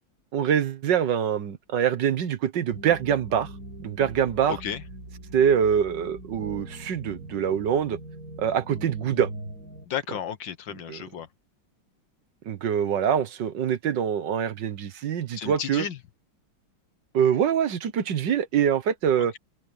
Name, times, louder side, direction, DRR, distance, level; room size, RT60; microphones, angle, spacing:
voice 1, 0.3-3.5 3.8-4.6 5.3-8.0 8.4-9.3 10.9-11.0 12.5-15.9 17.1-19.3, right 8 dB, 65° right, 1.7 m, -24 dB
sound 1, 2.7-9.9, right 1 dB, 45° right, 5.9 m, -41 dB
voice 2, 4.5-4.8 9.9-11.3 15.4-16.0 19.2-19.4, left 9 dB, 70° left, 1.9 m, -33 dB
open air
omnidirectional pair, 2.2 m